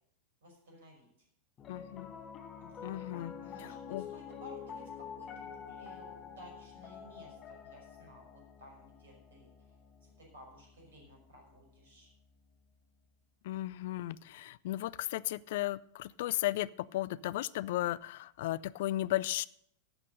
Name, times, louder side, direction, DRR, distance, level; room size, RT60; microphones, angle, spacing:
voice 1, 0.4-1.1 2.6-9.7 10.0-12.1, equal, 60° right, 0 dB, 5.5 m, -55 dB
Piano, 1.6-11.9, left 7 dB, 30° left, 1.3 m, -48 dB
voice 2, 1.7-2.1 2.8-3.3 3.9-4.0 13.4-19.4, left 15 dB, 55° left, 20 dB, 0.4 m, -35 dB
12.0 x 7.5 x 6.6 m, 0.71 s
figure-of-eight pair, 90°, 0 cm